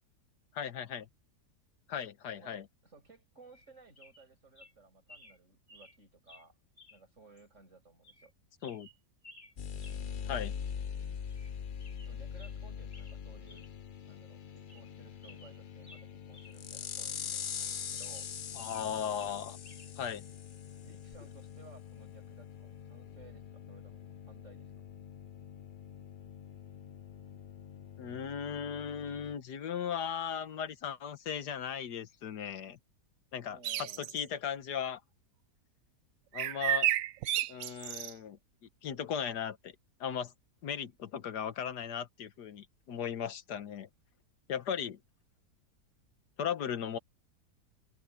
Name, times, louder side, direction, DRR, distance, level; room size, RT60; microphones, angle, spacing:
voice 1, 0.5-1.1 1.9-2.6 8.6-8.9 10.3-10.5 18.6-19.6 20.0-20.2 28.0-32.8 33.3-35.0 36.3-36.9 37.5-38.4 38.8-39.7 40.0-40.3 40.6-43.9 44.5-45.0 46.4-47.0, left 8 dB, 75° left, 1.7 m, -37 dB
voice 2, 2.4-6.6 6.9-8.3 12.1-13.7 14.1-18.3 20.8-24.7 33.5-34.1, right 3 dB, 45° right, 7.7 m, -58 dB
sound 1, 3.5-3.7 4.0-4.3 4.6-4.7 5.1-5.4 5.7-6.0 6.3-6.5 6.8-7.0 7.4-7.5 8.0-8.3 8.6-9.5 9.8-10.0 10.3-10.6 10.9-11.0 11.3-11.5 11.8-12.6 12.9-13.2 13.5-13.7 14.1-14.2 14.6-15.0 15.2-16.6 16.9-17.0 17.5-18.9 19.2-19.9 21.1-21.3, left 2 dB, 40° left, 4.4 m, -57 dB
sound 2, 9.6-29.4, left 7 dB, 60° left, 0.5 m, -43 dB
sound 3, 33.6-34.2 36.3-38.1, right 12 dB, 65° right, 0.9 m, -31 dB
omnidirectional pair, 1.8 m